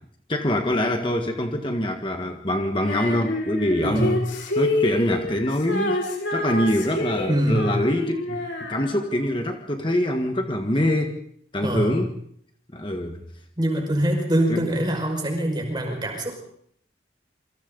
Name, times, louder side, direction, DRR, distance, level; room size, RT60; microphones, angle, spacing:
voice 1, 0.3-4.2 4.5-6.0 6.3-8.4 8.7-11.2 11.5-12.1 12.7-13.2 14.5-14.6, left 1 dB, 25° left, 4 dB, 1.5 m, -24 dB
Female singing, 2.8-9.3, left 2 dB, 90° left, 5.1 m, -28 dB
voice 2, 3.8-4.2 7.3-7.7 11.6-12.1 13.6-16.4, right 1 dB, 25° right, 2 dB, 5.6 m, -24 dB
27.5 x 25.0 x 4.0 m, 0.66 s
head